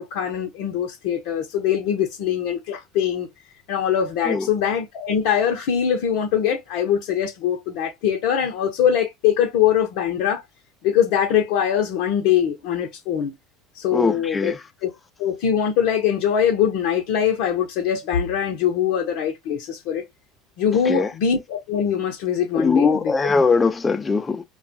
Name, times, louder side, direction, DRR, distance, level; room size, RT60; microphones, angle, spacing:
voice 1, 0.0-3.3 3.7-10.4 10.8-13.3 13.7-14.5 14.8-14.9 15.2-20.0 20.6-23.1, left 8 dB, 70° left, 0.6 m, -22 dB
voice 2, 13.9-14.5 20.9-21.1 22.5-24.4, left 4 dB, 20° left, 0.4 m, -20 dB
2.3 x 2.2 x 2.6 m
hypercardioid pair, 85°, 0 cm